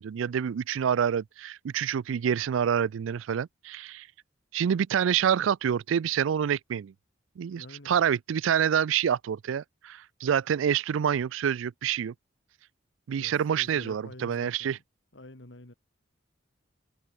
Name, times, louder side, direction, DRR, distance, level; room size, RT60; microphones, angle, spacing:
voice 1, 0.0-4.1 4.5-6.9 7.4-12.1 13.1-14.8, right 8 dB, 80° right, 0.4 m, -27 dB
voice 2, 7.5-8.0 13.1-14.8 15.1-15.7, left 1 dB, 65° left, 2.4 m, -48 dB
head